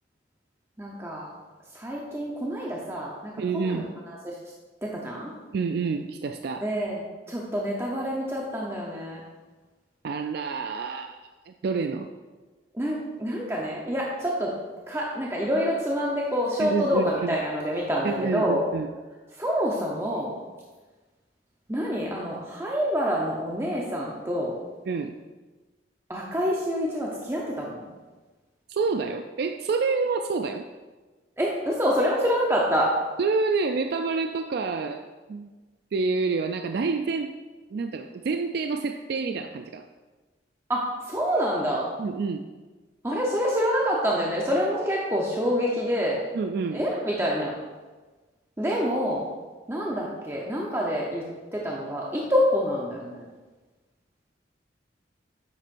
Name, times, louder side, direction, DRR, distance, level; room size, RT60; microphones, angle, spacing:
voice 1, 0.8-1.3 1.7-4.4 4.8-5.3 6.6-9.2 12.7-14.5 14.9-18.6 19.4-20.3 21.7-24.5 26.1-27.9 31.4-32.9 40.7-41.9 43.0-46.2 46.7-47.5 48.6-49.2 49.7-51.2 51.5-53.3, equal, 15° right, -3 dB, 0.8 m, -27 dB
voice 2, 3.4-3.9 5.5-6.7 10.0-11.2 11.5-12.1 16.6-17.4 18.0-18.9 24.9-25.2 28.7-30.7 33.2-35.0 35.3-35.5 35.9-37.3 37.7-39.8 42.0-42.4 46.3-46.8, right 4 dB, 55° right, 6 dB, 0.3 m, -28 dB
10.0 x 7.4 x 2.6 m, 1.3 s
head